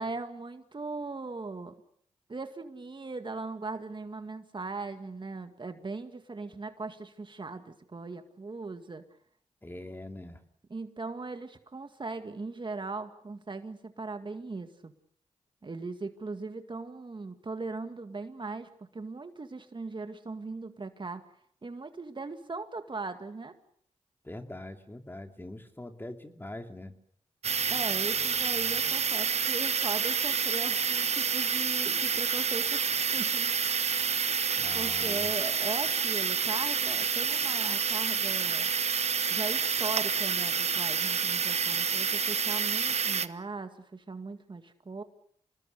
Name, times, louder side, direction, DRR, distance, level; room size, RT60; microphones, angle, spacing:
voice 1, 0.0-1.7 2.3-9.0 10.7-14.9 15.6-21.2 21.6-23.5 27.7-34.0 34.7-38.7 39.3-45.0, right 3 dB, 40° right, 8 dB, 2.1 m, -39 dB
voice 2, 9.6-10.4 24.2-26.9 34.6-35.3, left 1 dB, 15° left, 5 dB, 3.0 m, -43 dB
sound 1, 27.4-43.3, right 6 dB, 60° right, 1.1 m, -28 dB
27.5 x 20.0 x 6.8 m, 0.65 s
cardioid pair, 55°, 12 cm